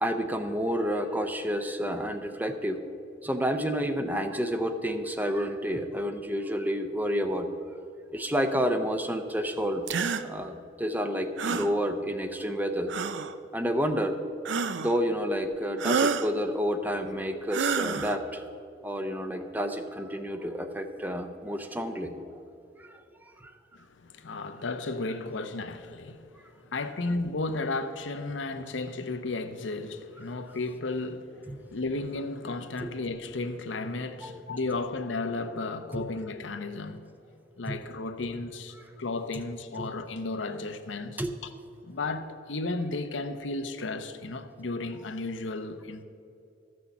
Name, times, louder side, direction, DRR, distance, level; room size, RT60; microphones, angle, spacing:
voice 1, 0.0-2.8 3.2-7.5 8.1-9.8 10.2-12.9 13.5-14.2 14.8-18.5 18.8-22.1 22.8-22.9 23.4-23.5 31.5-31.6 32.8-32.9 34.2-34.4 35.9-36.1 37.7-37.8 39.8-39.9 41.2-41.3, equal, 10° right, 0.6 m, -30 dB
sound 1, 9.9-10.2 11.4-11.7 12.9-13.3 14.5-15.0 15.8-16.3 17.5-18.2, right 5 dB, 75° right, 0.5 m, -28 dB
voice 2, 23.7-26.3 26.6-37.1 37.6-41.5 41.8-46.0, left 3 dB, 80° left, 0.7 m, -34 dB
13.0 x 6.3 x 7.0 m
head